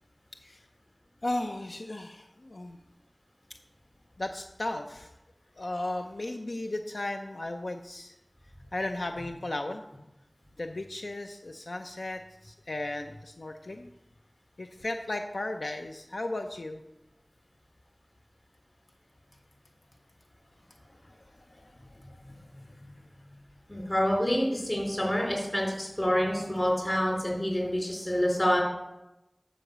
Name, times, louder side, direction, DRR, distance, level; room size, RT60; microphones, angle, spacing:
voice 1, 1.2-2.8 4.2-5.1 5.6-8.1 8.7-9.8 10.6-13.9 14.6-16.8 21.1-21.2 21.5-22.0, left 2 dB, 85° left, 5 dB, 0.5 m, -35 dB
voice 2, 23.7-28.6, equal, 35° left, -1 dB, 4.2 m, -27 dB
11.0 x 5.1 x 6.8 m, 0.94 s
wide cardioid pair, 40°, 0 cm